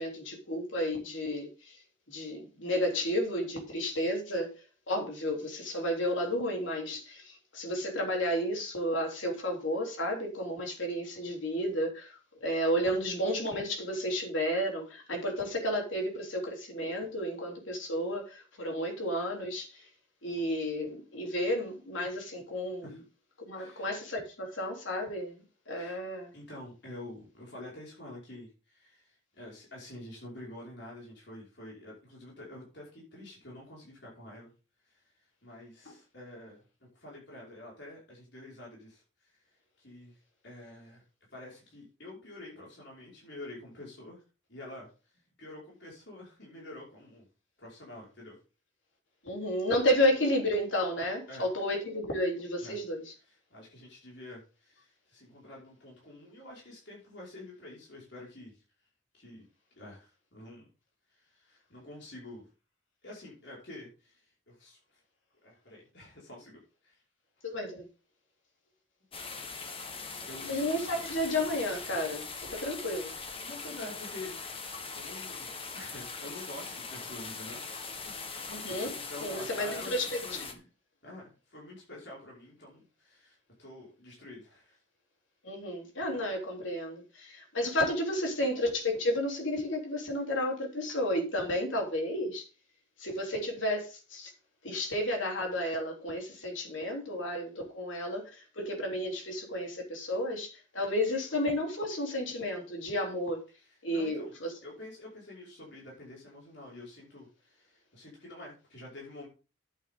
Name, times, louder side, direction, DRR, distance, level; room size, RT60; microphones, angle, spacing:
voice 1, 0.0-1.8 2.1-4.5 4.9-19.9 20.2-22.9 23.5-25.3 25.7-26.3 35.9-36.0 49.2-53.1 67.4-67.9 70.5-73.1 78.5-80.4 85.4-92.5 93.0-94.3 94.6-103.4 103.8-104.5, equal, 75° left, 3.5 m, -32 dB
voice 2, 23.6-23.9 25.7-26.0 26.3-34.5 34.8-36.6 37.0-39.4 39.8-41.0 41.3-44.2 44.5-44.9 45.4-47.3 47.6-48.4 51.3-51.5 52.6-52.8 53.3-58.6 59.1-59.5 59.8-60.7 61.1-62.5 63.0-64.8 65.4-67.0 69.9-70.6 70.9-71.0 73.4-78.2 78.6-80.6 81.0-84.8 103.6-104.3 104.6-109.3, left 1 dB, 60° left, 5.3 m, -48 dB
sound 1, 69.1-80.5, left 4 dB, 30° left, 1.3 m, -41 dB
11.0 x 8.8 x 3.8 m
head